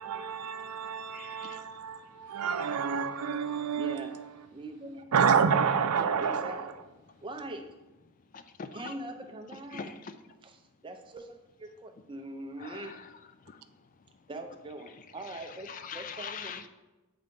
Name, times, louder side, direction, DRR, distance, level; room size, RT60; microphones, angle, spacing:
voice 1, 0.0-4.0 5.1-6.7, right 6 dB, 90° right, 10 dB, 0.4 m, -28 dB
voice 2, 1.1-1.6 8.3-8.9 9.7-9.9 12.6-12.9 13.5-13.6 15.7-16.7, left 6 dB, 35° left, 10 dB, 0.3 m, -42 dB
voice 3, 3.7-4.2 4.5-5.1 5.9-6.7 7.2-7.7 8.7-10.0 10.4-13.0 14.3-16.6, right 1 dB, 20° right, 5 dB, 0.5 m, -42 dB
7.7 x 3.8 x 3.6 m, 1.1 s
head